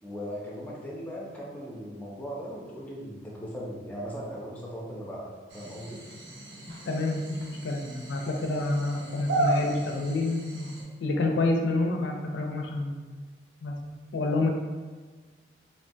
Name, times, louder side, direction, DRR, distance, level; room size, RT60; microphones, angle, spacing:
voice 1, 0.0-6.1, equal, 10° left, -4 dB, 0.4 m, -38 dB
sound 1, 5.5-10.8, right 2 dB, 80° right, 0.6 m, -34 dB
voice 2, 6.7-10.7 11.0-13.1 13.6-13.8 14.1-14.5, left 2 dB, 80° left, 2 dB, 0.4 m, -28 dB
3.1 x 2.2 x 2.5 m, 1.4 s
head